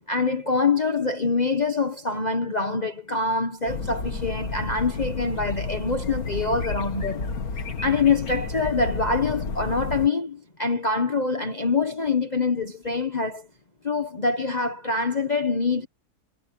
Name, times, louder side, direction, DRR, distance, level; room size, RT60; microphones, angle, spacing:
voice 1, 0.1-7.3 7.8-13.5 13.8-15.9, left 4 dB, 30° left, 1.3 m, -25 dB
sound 1, 3.7-10.1, left 4 dB, 70° left, 2.6 m, -31 dB
omnidirectional pair, 1.6 m